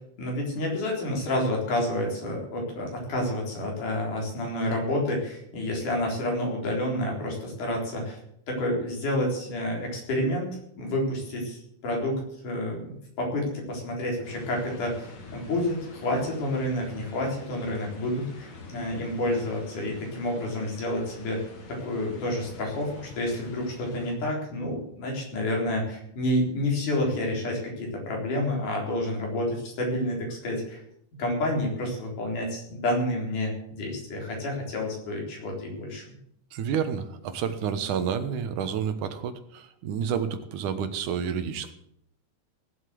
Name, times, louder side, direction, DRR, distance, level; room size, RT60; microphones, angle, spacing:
voice 1, 0.2-8.2 8.5-10.5 10.8-21.4 21.7-30.8 31.2-36.0, left 1 dB, 85° left, 0 dB, 5.7 m, -29 dB
sound 1, 14.2-24.1, left 3 dB, 70° left, 4.0 m, -46 dB
voice 2, 36.5-41.7, right 7 dB, 80° right, 10 dB, 2.7 m, -30 dB
17.5 x 8.1 x 7.7 m, 0.74 s
omnidirectional pair, 3.5 m